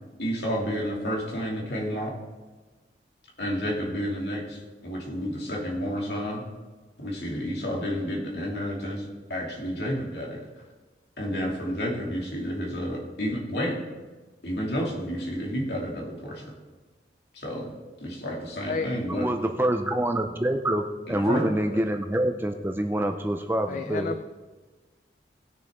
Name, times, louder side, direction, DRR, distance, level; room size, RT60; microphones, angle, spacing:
voice 1, 0.2-2.1 3.4-6.4 7.0-10.4 11.2-13.7 14.4-16.4 17.3-17.7 18.0-19.3 21.1-21.5 21.7-21.8, equal, 65° left, -2 dB, 2.5 m, -30 dB
voice 2, 19.1-24.2, right 1 dB, 10° right, 5 dB, 0.5 m, -26 dB
voice 3, 23.7-24.2, left 4 dB, 45° left, 10 dB, 0.3 m, -31 dB
18.5 x 6.7 x 3.6 m, 1.3 s
head